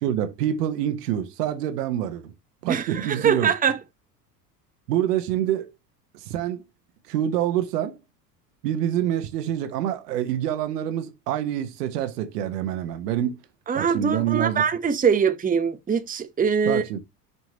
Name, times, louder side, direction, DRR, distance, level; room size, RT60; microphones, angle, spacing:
voice 1, 0.0-2.3 2.6-3.5 4.9-5.7 6.1-6.6 7.1-8.0 8.6-13.4 13.7-14.6 16.6-17.0, right 11 dB, 70° right, 1.3 m, -26 dB
voice 2, 2.7-3.8 13.7-16.8, right 6 dB, 15° right, 1.0 m, -23 dB
6.1 x 6.1 x 2.9 m
hypercardioid pair, 75°, 48 cm